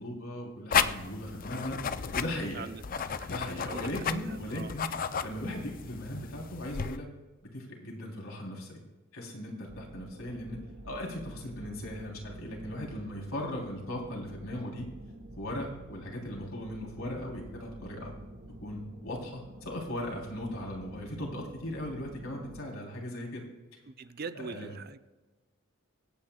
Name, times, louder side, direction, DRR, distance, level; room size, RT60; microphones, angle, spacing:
voice 1, 0.0-1.8 2.1-2.7 3.2-4.9 5.2-7.1 7.5-8.8 9.1-10.6 10.8-14.9 15.4-18.1 18.6-23.4 24.3-24.7, left 1 dB, 80° left, -1 dB, 3.5 m, -38 dB
sound 1, 0.7-7.0, left 7 dB, 40° left, 0.5 m, -33 dB
voice 2, 2.5-3.3 3.6-4.7 23.9-25.0, right 5 dB, 45° right, 12 dB, 0.6 m, -43 dB
sound 2, 9.7-22.6, right 1 dB, 85° right, 1.1 m, -49 dB
24.5 x 9.1 x 2.3 m, 1.2 s
head